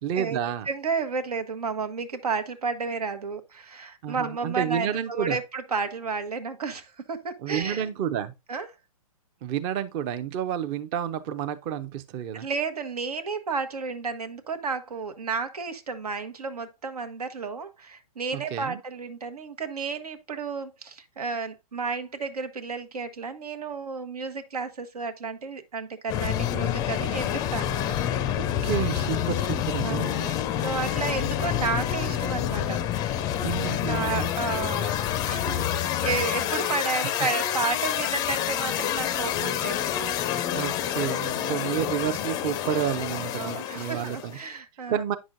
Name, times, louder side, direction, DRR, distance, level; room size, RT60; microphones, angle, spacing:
voice 1, 0.0-0.7 4.0-5.4 7.4-8.3 9.4-12.5 18.3-18.8 28.4-30.1 33.4-34.3 40.5-44.4 44.9-45.2, right 9 dB, 30° right, 0.6 m, -30 dB
voice 2, 0.6-7.9 8.5-8.7 12.3-27.8 28.2-28.4 29.8-32.8 33.8-40.0 41.3-41.6 43.4-45.0, right 4 dB, 90° right, 1.2 m, -32 dB
sound 1, 26.1-44.4, left 11 dB, 20° left, 0.4 m, -28 dB
8.7 x 6.1 x 2.6 m
hypercardioid pair, 135°, 19 cm